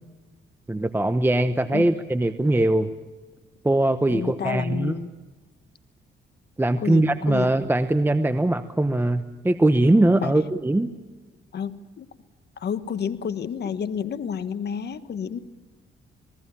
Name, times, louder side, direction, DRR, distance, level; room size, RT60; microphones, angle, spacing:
voice 1, 0.7-2.9 3.6-5.0 6.6-10.9, right 1 dB, 10° right, 9 dB, 1.0 m, -21 dB
voice 2, 4.1-5.1 6.8-7.5 10.2-10.3 11.5-12.1 12.6-15.4, left 7 dB, 55° left, 12 dB, 1.4 m, -30 dB
27.5 x 20.0 x 7.2 m, 1.3 s
cardioid pair, 90°, 20 cm